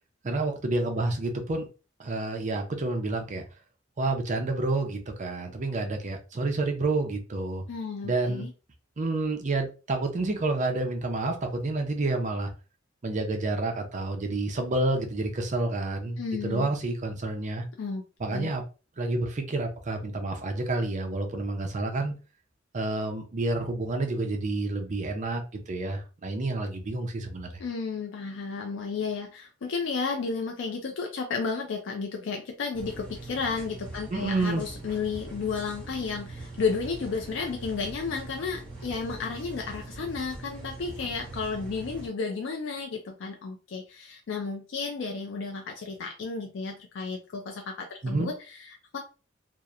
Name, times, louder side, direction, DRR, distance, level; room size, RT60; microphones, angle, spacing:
voice 1, 0.2-1.7 2.0-3.4 4.0-7.6 8.0-8.4 9.0-12.5 13.0-17.6 18.2-18.6 19.0-22.1 22.7-27.6 34.1-34.6 48.0-48.3, right 2 dB, 40° right, 4 dB, 0.5 m, -29 dB
voice 2, 7.7-8.5 16.2-16.7 17.8-18.0 18.3-18.5 27.6-49.0, left 5 dB, 65° left, 3 dB, 0.4 m, -33 dB
sound 1, 32.7-42.1, right 2 dB, 5° left, 0.9 m, -42 dB
2.8 x 2.0 x 2.4 m, 0.33 s
head